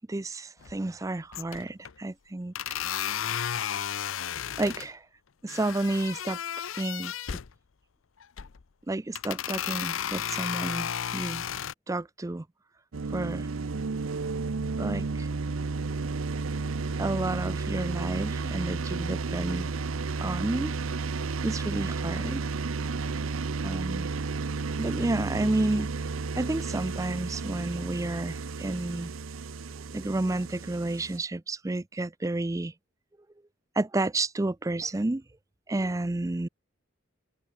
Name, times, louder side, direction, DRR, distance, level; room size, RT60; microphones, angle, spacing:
voice 1, 0.1-2.5 4.6-5.0 5.4-6.4 6.8-7.4 8.9-11.5 11.9-12.4 13.1-13.5 14.8-15.3 17.0-19.8 20.2-20.7 21.4-22.4 23.6-24.1 24.8-26.0 26.4-29.1 29.9-32.7 33.8-35.2 35.7-36.5, right 2 dB, 15° right, 0.4 m, -31 dB
sound 1, 0.6-1.0 1.3-1.9 2.6-4.9 5.5-7.5 8.2-8.6 9.2-11.7, left 9 dB, 75° left, 0.6 m, -33 dB
sound 2, 12.9-31.2, right 4 dB, 80° right, 0.7 m, -32 dB
head